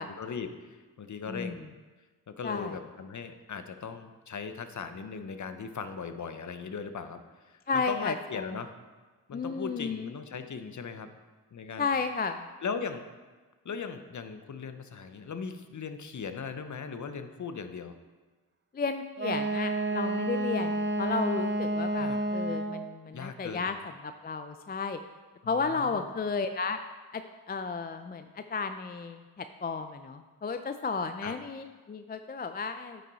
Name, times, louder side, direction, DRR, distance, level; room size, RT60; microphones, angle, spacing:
voice 1, 0.0-1.6 2.3-8.7 9.3-11.1 11.5-11.9 12.6-13.0 13.6-17.9 22.0-22.2 23.1-23.8 25.4-26.1 31.2-31.3, left 5 dB, 45° left, 9 dB, 0.8 m, -38 dB
voice 2, 1.3-1.6 2.4-2.8 7.7-8.5 9.3-10.1 11.8-12.5 18.7-23.8 24.0-25.0 25.5-26.8 27.1-27.2 27.5-33.0, left 4 dB, 25° left, 8 dB, 0.4 m, -33 dB
Wind instrument woodwind instrument, 19.2-22.9, right 2 dB, 25° right, 0.9 m, -30 dB
9.3 x 6.2 x 4.0 m, 1.3 s
cardioid pair, 55°, 41 cm